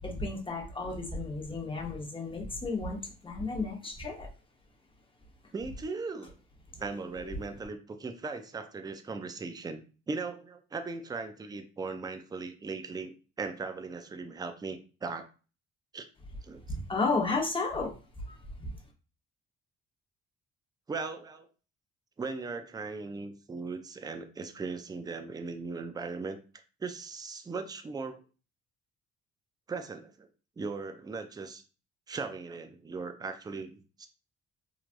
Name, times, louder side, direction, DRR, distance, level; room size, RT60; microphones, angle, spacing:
voice 1, 0.0-4.3 7.2-7.4 16.7-17.9 18.3-18.4, left 3 dB, 15° left, 0 dB, 0.8 m, -33 dB
voice 2, 5.5-6.3 6.8-15.3 15.9-16.1 16.4-16.6 20.9-21.5 22.2-26.4 26.8-28.2 29.7-30.3 30.6-31.6 32.1-34.1, right 4 dB, 15° right, 7 dB, 0.3 m, -38 dB
3.2 x 2.3 x 2.5 m, 0.35 s
cardioid pair, 90°, 30 cm